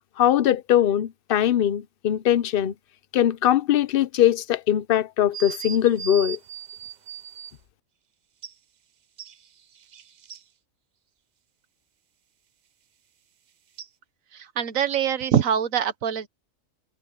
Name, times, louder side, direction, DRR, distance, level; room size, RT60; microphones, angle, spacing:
voice 1, 0.2-2.7 3.1-6.4, left 11 dB, 50° left, 0.8 m, -21 dB
sound 1, 5.3-7.6 8.4-8.5 9.2-10.4 13.8-13.9, right 8 dB, 50° right, 0.5 m, -38 dB
voice 2, 14.3-16.3, right 9 dB, 85° right, 1.4 m, -24 dB
omnidirectional pair, 1.4 m